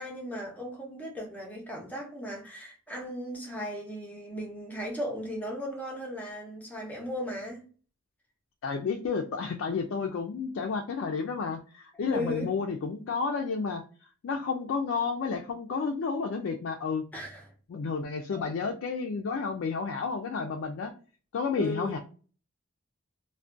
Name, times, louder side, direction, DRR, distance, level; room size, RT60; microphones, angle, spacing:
voice 1, 0.0-7.7 12.1-12.5 17.1-17.5 18.3-18.5 21.6-22.0, left 1 dB, 5° left, 0.6 m, -36 dB
voice 2, 8.6-13.8 14.2-17.0 17.7-20.9 21.3-22.0, left 5 dB, 60° left, 0.3 m, -31 dB
2.3 x 2.1 x 2.4 m
head